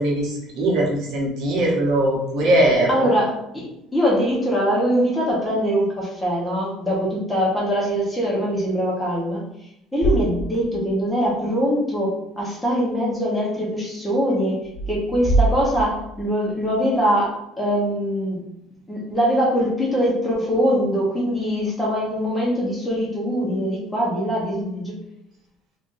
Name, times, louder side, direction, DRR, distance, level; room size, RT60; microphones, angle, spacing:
voice 1, 0.0-3.1, right 1 dB, 65° right, -2 dB, 0.9 m, -20 dB
voice 2, 2.9-3.6 3.9-9.4 9.9-14.6 14.9-18.4 18.9-24.9, equal, 5° left, -6 dB, 1.0 m, -22 dB
sound 1, 10.0-11.0 11.3-11.4 14.6-16.7, right 2 dB, 35° left, 0.5 m, -24 dB
3.4 x 2.6 x 2.6 m, 0.80 s
cardioid pair, 150°, 0 cm